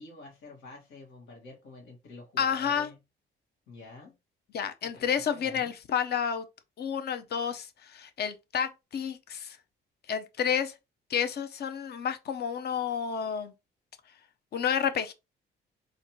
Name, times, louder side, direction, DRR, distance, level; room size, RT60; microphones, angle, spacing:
voice 1, 0.0-3.0 3.7-4.1 4.8-5.7, left 2 dB, 90° left, 1.3 m, -48 dB
voice 2, 2.4-2.9 4.5-6.5 6.8-9.6 10.1-10.7 11.1-13.5 14.5-15.1, left 7 dB, 55° left, 0.6 m, -30 dB
4.1 x 2.5 x 3.0 m
cardioid pair, 90°, 20 cm